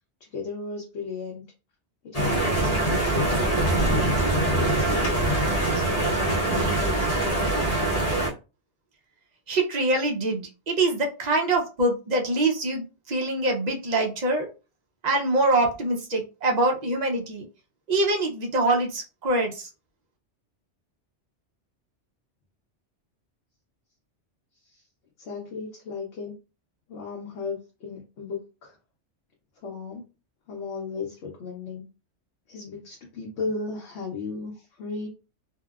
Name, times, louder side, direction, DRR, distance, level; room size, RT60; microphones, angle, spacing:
voice 1, 0.2-1.4 2.0-4.0 4.8-7.5 24.6-24.8 25.2-26.3 26.9-28.8 29.6-30.0 30.5-31.9 32.5-35.1, left 4 dB, 70° left, 0 dB, 0.9 m, -36 dB
sound 1, 2.1-8.3, right 1 dB, 40° left, 0.8 m, -23 dB
voice 2, 9.5-14.5 15.0-17.4 17.9-19.7, right 2 dB, 50° right, 2 dB, 0.5 m, -24 dB
2.7 x 2.0 x 2.3 m, 0.31 s
omnidirectional pair, 1.2 m